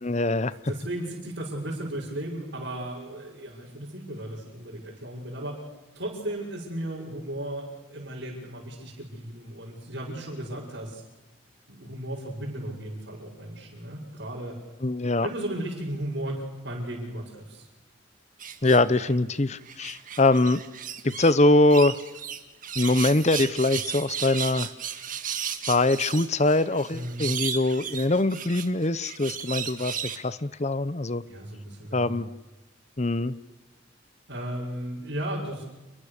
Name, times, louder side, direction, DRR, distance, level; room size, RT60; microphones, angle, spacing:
voice 1, 0.0-0.5 14.8-15.3 18.6-20.6 21.0-22.0 22.8-24.7 25.6-31.2 31.9-32.3 33.0-33.3, left 2 dB, 35° left, 16 dB, 0.8 m, -23 dB
voice 2, 0.7-5.6 5.9-11.0 11.7-14.6 15.2-17.7 26.9-27.2 31.3-32.2 34.3-35.6, right 1 dB, 60° right, -5 dB, 6.4 m, -35 dB
sound 1, 18.4-19.2 19.6-21.3 21.7-30.2, right 8 dB, 40° right, 1.9 m, -35 dB
29.5 x 22.0 x 6.7 m, 1.1 s
head